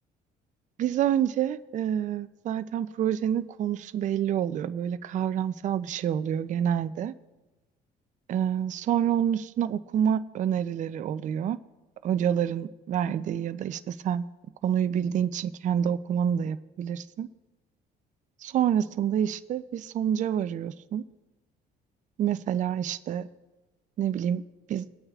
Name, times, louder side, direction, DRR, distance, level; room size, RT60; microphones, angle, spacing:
voice 1, 0.8-7.1 8.3-11.6 12.0-14.2 14.6-17.3 18.4-21.0 22.2-23.3 24.0-24.4 24.7-24.9, right 9 dB, 50° right, 12 dB, 0.4 m, -27 dB
22.5 x 8.8 x 2.4 m, 1.1 s
cardioid pair, 110°, 17 cm